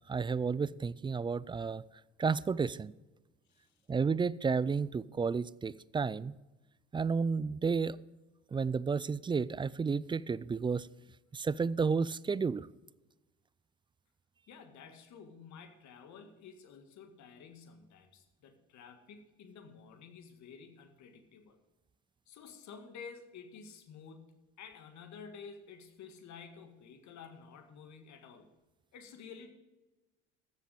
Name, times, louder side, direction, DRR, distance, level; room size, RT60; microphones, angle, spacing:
voice 1, 0.1-1.8 2.2-2.9 3.9-6.4 6.9-8.0 8.5-10.9 11.3-12.7, right 5 dB, 15° right, 19 dB, 0.3 m, -32 dB
voice 2, 14.5-21.6 22.3-28.5 28.9-29.5, left 6 dB, 60° left, 7 dB, 1.9 m, -51 dB
14.0 x 7.3 x 5.2 m, 1.1 s
hypercardioid pair, 70°, 32 cm